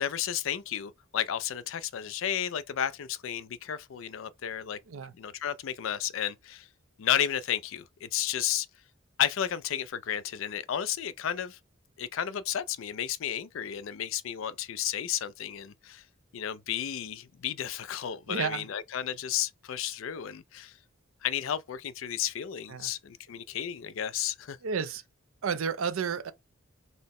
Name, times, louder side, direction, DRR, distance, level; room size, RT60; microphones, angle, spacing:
voice 1, 0.0-4.8 5.2-6.7 7.0-8.7 9.2-11.6 12.0-16.0 16.3-20.8 21.2-24.6, left 10 dB, 75° left, 0.4 m, -32 dB
voice 2, 18.3-18.7 22.7-22.9 24.6-25.0 25.4-26.3, right 6 dB, 85° right, 0.5 m, -31 dB
4.0 x 2.1 x 3.5 m
head